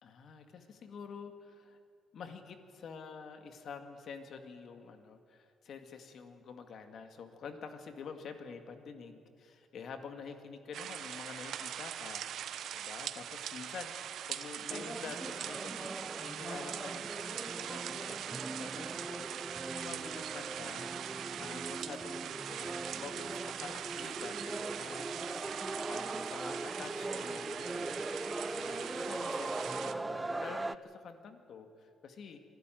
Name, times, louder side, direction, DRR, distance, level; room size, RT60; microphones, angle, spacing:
voice 1, 0.0-1.8 2.1-12.3 12.7-15.9 16.2-25.4 25.9-32.4, left 5 dB, 65° left, 7 dB, 2.0 m, -48 dB
sound 1, 10.7-29.9, right 10 dB, 75° right, 1.0 m, -42 dB
sound 2, 14.7-30.7, right 2 dB, 20° right, 0.6 m, -40 dB
24.0 x 13.0 x 9.2 m, 2.4 s
cardioid pair, 90°, 0 cm